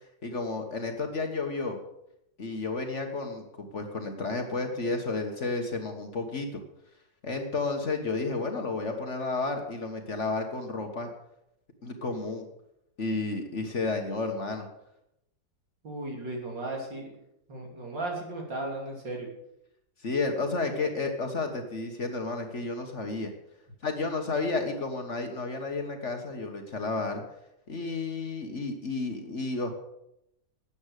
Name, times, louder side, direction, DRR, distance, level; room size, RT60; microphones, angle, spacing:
voice 1, 0.2-1.8 2.4-6.6 7.2-11.1 11.8-12.5 13.0-14.7 20.0-23.3 23.8-27.2 27.7-29.7, left 3 dB, 40° left, 4 dB, 1.5 m, -31 dB
voice 2, 15.8-17.1 17.5-19.3, right 2 dB, 75° right, 0 dB, 3.8 m, -35 dB
12.5 x 8.7 x 6.6 m, 0.83 s
omnidirectional pair, 2.0 m